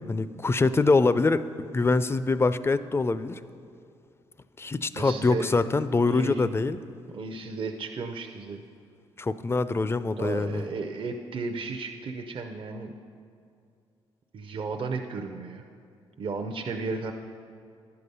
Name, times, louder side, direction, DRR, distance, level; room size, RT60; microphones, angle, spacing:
voice 1, 0.1-1.5 1.7-3.4 4.6-6.8 9.2-10.6, left 3 dB, 25° left, 14 dB, 0.4 m, -24 dB
voice 2, 4.9-5.7 6.1-6.5 7.1-8.6 10.2-12.9 14.3-15.6 16.2-17.1, right 4 dB, 55° right, 4 dB, 0.6 m, -34 dB
10.5 x 6.7 x 5.4 m, 2.4 s
cardioid pair, 70°, 11 cm